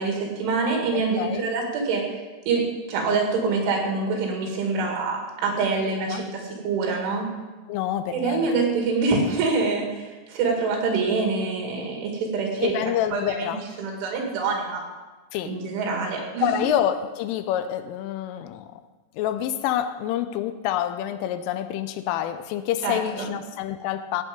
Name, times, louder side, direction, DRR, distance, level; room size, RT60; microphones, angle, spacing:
voice 1, 0.0-2.1 2.5-7.3 8.1-13.5 13.8-14.9 15.4-16.5 22.8-23.3, right 4 dB, 70° right, 1 dB, 4.5 m, -25 dB
voice 2, 0.9-1.5 6.1-6.2 7.7-8.5 12.6-13.6 15.3-15.6 16.4-18.7 19.2-24.2, left 11 dB, 90° left, 11 dB, 3.2 m, -27 dB
16.0 x 8.6 x 5.3 m, 1.2 s
omnidirectional pair, 5.8 m